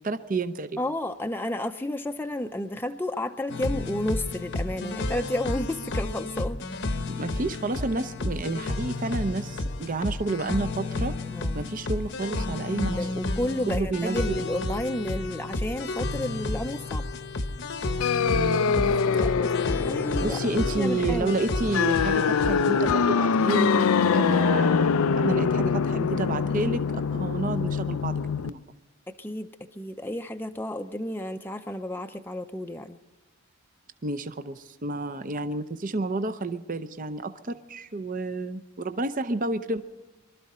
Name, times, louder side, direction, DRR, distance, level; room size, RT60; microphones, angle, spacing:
voice 1, 0.0-0.8 7.2-11.2 11.5-13.1 13.7-14.4 18.3-18.6 19.2-19.3 20.2-24.9 25.2-26.8 27.1-28.6 34.0-39.8, right 2 dB, 40° right, 10 dB, 0.6 m, -30 dB
voice 2, 0.8-6.6 11.3-11.6 12.7-17.1 18.7-21.3 29.2-29.5 29.8-33.0, left 1 dB, 10° left, 6 dB, 0.5 m, -32 dB
sound 1, 3.5-22.9, left 2 dB, 55° left, 0.9 m, -31 dB
sound 2, 18.0-28.5, left 6 dB, 75° left, 0.5 m, -24 dB
24.0 x 12.5 x 4.3 m, 1.1 s
head